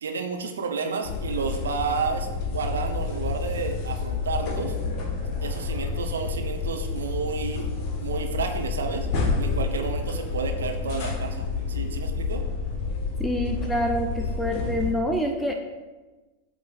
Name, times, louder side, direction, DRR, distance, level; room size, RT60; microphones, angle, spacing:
voice 1, 0.0-4.7 5.4-7.7 8.0-9.1 9.4-12.5, right 5 dB, 65° right, 4 dB, 0.8 m, -31 dB
sound 1, 1.0-14.9, left 4 dB, 35° left, 1.4 m, -29 dB
voice 2, 13.2-15.5, equal, ahead, 2 dB, 0.6 m, -26 dB
8.1 x 3.1 x 5.9 m, 1.2 s
figure-of-eight pair, 90°, 0 cm